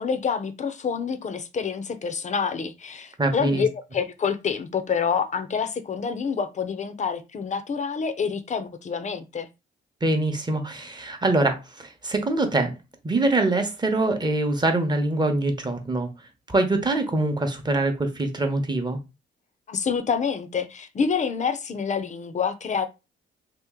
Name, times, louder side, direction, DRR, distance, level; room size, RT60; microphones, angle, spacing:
voice 1, 0.0-9.5 19.7-22.9, left 6 dB, 35° left, 0.6 m, -27 dB
voice 2, 3.2-3.6 10.0-12.7 13.0-16.1 16.5-19.0, right 2 dB, 20° right, 0.8 m, -24 dB
2.9 x 2.4 x 3.6 m
cardioid pair, 90°, 20 cm